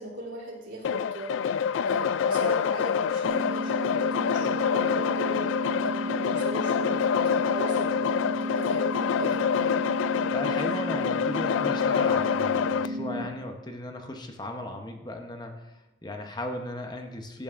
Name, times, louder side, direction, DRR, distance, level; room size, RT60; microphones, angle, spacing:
voice 1, 0.0-9.7, right 1 dB, 85° right, -3 dB, 3.3 m, -38 dB
electro percussion, 0.8-12.9, left 7 dB, 85° left, 0.3 m, -26 dB
sound 1, 3.2-13.2, left 1 dB, 55° right, 1.7 m, -32 dB
voice 2, 10.3-17.4, left 1 dB, 20° left, 4 dB, 0.8 m, -36 dB
15.5 x 8.9 x 2.5 m, 1.0 s
head